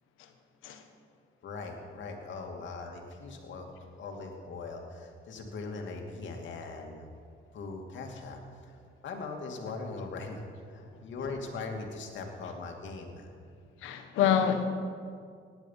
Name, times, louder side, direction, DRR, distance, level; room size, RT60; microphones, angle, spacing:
voice 1, 1.4-3.7 4.0-7.1 7.5-8.8 9.0-10.4 10.7-13.3, left 3 dB, 70° left, 2 dB, 2.4 m, -40 dB
voice 2, 13.8-14.8, left 8 dB, 90° left, 7 dB, 1.3 m, -26 dB
17.5 x 10.5 x 5.7 m, 2.2 s
cardioid pair, 90°, 20 cm